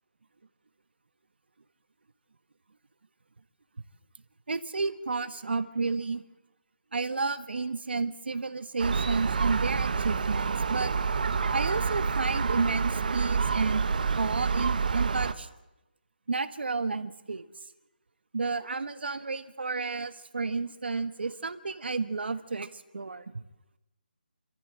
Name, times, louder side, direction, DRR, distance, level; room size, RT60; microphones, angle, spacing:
voice 1, 4.5-6.2 6.9-10.9 11.5-13.9 14.1-15.5 16.3-17.4 18.3-23.4, right 4 dB, 75° right, 11 dB, 1.5 m, -31 dB
Gull seagull, 8.8-15.3, right 5 dB, 55° right, 1.2 m, -28 dB
27.5 x 14.5 x 7.8 m, 0.96 s
hypercardioid pair, 170°, 6 cm